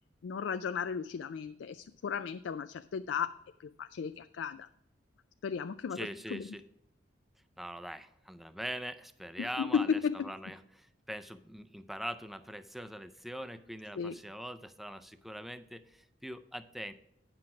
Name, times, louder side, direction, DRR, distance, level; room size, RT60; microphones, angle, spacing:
voice 1, 0.2-4.7 5.4-6.5 9.4-10.3 14.0-14.2, left 6 dB, 75° left, 11 dB, 0.4 m, -35 dB
voice 2, 6.0-6.6 7.6-16.9, equal, ahead, 10 dB, 0.4 m, -42 dB
9.7 x 6.0 x 4.8 m, 0.82 s
head